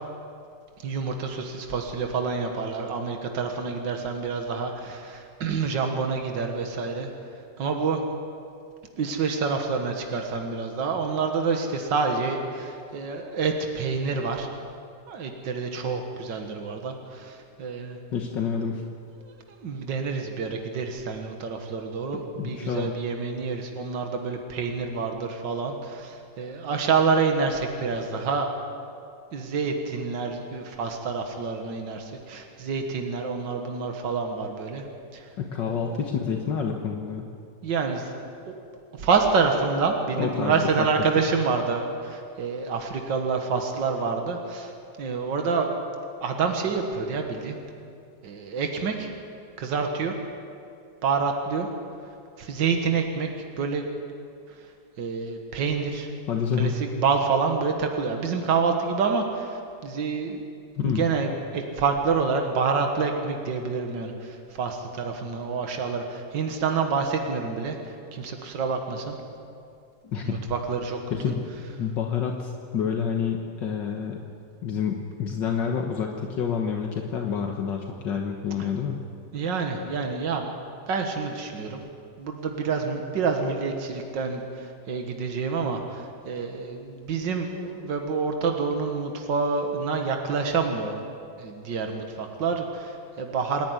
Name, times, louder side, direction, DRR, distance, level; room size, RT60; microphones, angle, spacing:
voice 1, 0.8-7.1 7.6-8.0 9.0-14.5 15.1-18.0 19.2-28.5 29.3-34.8 35.1-35.3 35.6-36.1 37.6-38.1 38.5-38.6 39.0-44.7 45.0-45.7 46.2-47.6 48.2-49.1 49.6-50.1 51.0-51.7 52.4-53.3 53.6-53.8 55.0-56.1 56.6-60.4 60.8-69.1 70.2-71.0 79.3-80.4 80.9-81.8 82.2-91.0 91.4-93.6, right 5 dB, 70° right, 4 dB, 2.2 m, -27 dB
voice 2, 18.1-18.8 22.1-22.9 35.4-37.3 40.2-40.9 56.3-56.8 60.8-61.0 70.0-70.4 71.1-71.5 71.8-74.2 74.6-79.0, left 7 dB, 75° left, 2 dB, 1.9 m, -28 dB
27.0 x 10.5 x 9.5 m, 2.4 s
omnidirectional pair, 2.0 m